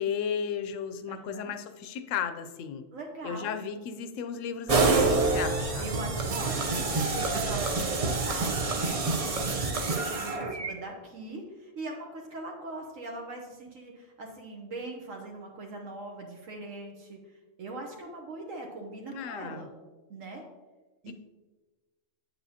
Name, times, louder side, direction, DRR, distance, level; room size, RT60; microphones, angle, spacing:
voice 1, 0.0-2.8 3.2-5.8 19.1-19.7 21.1-21.2, left 7 dB, 70° left, 8 dB, 0.9 m, -34 dB
voice 2, 1.1-1.5 2.9-3.5 5.8-17.2 17.6-19.7 20.1-20.4 21.0-21.1, right 2 dB, 75° right, 0 dB, 1.3 m, -41 dB
sound 1, 4.7-10.7, right 3 dB, 40° right, 0.5 m, -27 dB
8.6 x 7.0 x 2.8 m, 1.2 s
omnidirectional pair, 1.4 m